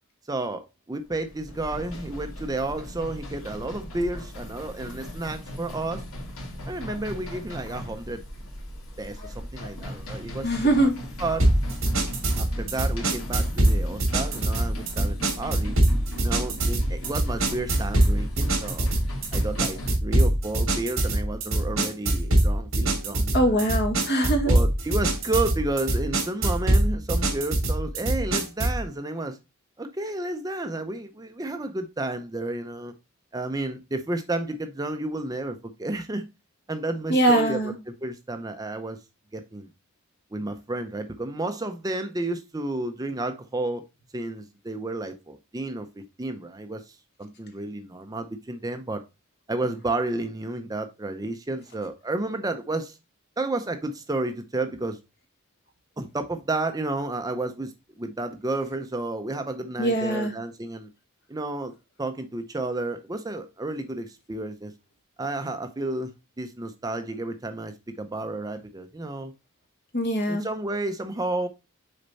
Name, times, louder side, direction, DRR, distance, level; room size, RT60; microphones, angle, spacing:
voice 1, 0.3-0.6 0.9-6.0 6.7-8.2 9.0-10.9 11.2-11.4 12.4-15.8 16.2-18.9 19.3-23.6 24.5-29.4 29.8-32.9 33.3-36.2 36.7-37.7 38.0-39.0 39.3-39.7 40.3-43.8 44.1-49.0 49.5-53.0 53.4-55.0 56.0-60.9 61.3-61.7 62.0-64.7 65.2-66.1 66.4-69.3 70.3-71.5, right 2 dB, 15° right, 7 dB, 0.6 m, -31 dB
sound 1, 1.1-20.0, equal, 75° left, 2.7 m, -37 dB
voice 2, 10.4-10.9 23.3-24.5 37.1-37.8 59.8-60.3 69.9-70.4, right 1 dB, 50° left, 4 dB, 1.9 m, -22 dB
sound 2, 11.4-28.8, right 1 dB, 60° right, 2.5 m, -24 dB
6.6 x 4.3 x 4.0 m, 0.26 s
head